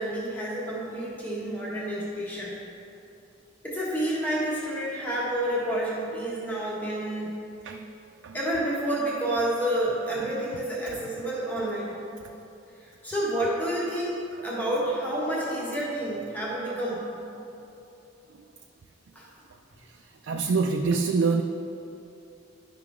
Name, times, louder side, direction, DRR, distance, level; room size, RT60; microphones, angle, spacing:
voice 1, 0.0-2.5 3.6-7.3 8.3-12.0 12.8-17.1 19.1-19.3, right 1 dB, 10° left, -7 dB, 1.5 m, -29 dB
voice 2, 20.2-21.4, right 4 dB, 70° right, 3 dB, 0.4 m, -25 dB
11.5 x 5.7 x 3.7 m, 2.8 s
head